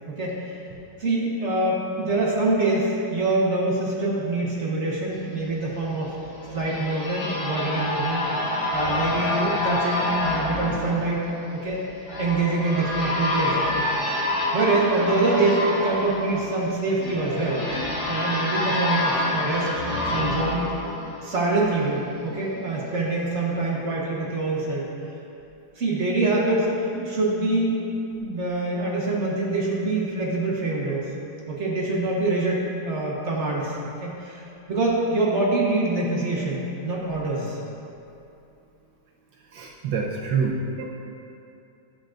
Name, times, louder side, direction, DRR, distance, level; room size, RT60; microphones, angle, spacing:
voice 1, 0.1-0.5 1.0-6.1 6.5-8.2 8.7-11.2 11.5-11.8 12.2-13.8 14.5-17.6 18.1-19.8 20.1-20.7 21.2-24.8 25.8-27.8 28.2-31.0 31.5-34.4 34.7-37.6, right 2 dB, 40° right, -4 dB, 1.2 m, -25 dB
sound 1, 6.0-21.7, left 1 dB, 50° left, 2.0 m, -27 dB
voice 2, 39.5-40.8, right 5 dB, 75° right, -1 dB, 1.3 m, -27 dB
11.5 x 7.2 x 2.5 m, 2.7 s
omnidirectional pair, 2.2 m